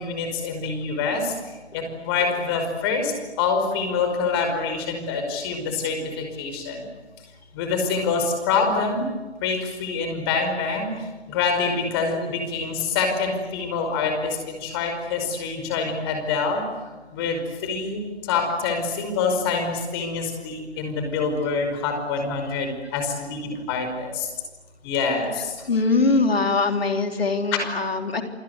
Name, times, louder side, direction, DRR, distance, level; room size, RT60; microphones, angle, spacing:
voice 1, 0.0-1.3 1.7-3.1 3.4-6.9 7.5-9.1 9.4-10.9 11.3-16.6 17.1-18.0 18.3-24.3 24.8-25.5, left 4 dB, 20° left, 5 dB, 5.3 m, -26 dB
voice 2, 25.7-28.2, left 3 dB, 60° left, 5 dB, 3.6 m, -22 dB
28.0 x 25.5 x 8.1 m, 1.2 s
figure-of-eight pair, 145°, 34 cm